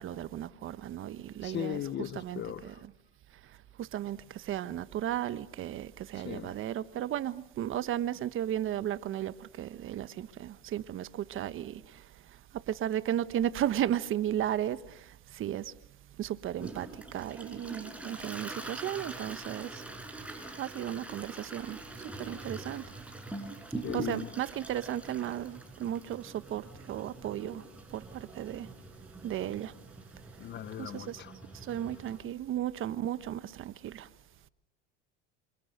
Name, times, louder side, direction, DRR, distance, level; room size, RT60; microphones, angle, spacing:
voice 1, 0.0-1.8 2.1-2.7 3.8-11.8 12.7-15.0 15.3-15.7 16.2-19.8 20.6-21.8 22.2-22.8 23.9-27.6 27.9-28.7 29.2-29.7 30.8-31.2 31.7-34.1, right 11 dB, 40° right, 1.2 m, -34 dB
voice 2, 1.4-2.8 6.1-6.6 23.8-24.3 30.4-31.4, left 11 dB, 35° left, 0.9 m, -38 dB
Toilet flush, 16.6-32.2, right 2 dB, 5° right, 5.5 m, -44 dB
27.5 x 27.0 x 6.6 m
supercardioid pair, 125°, 31 cm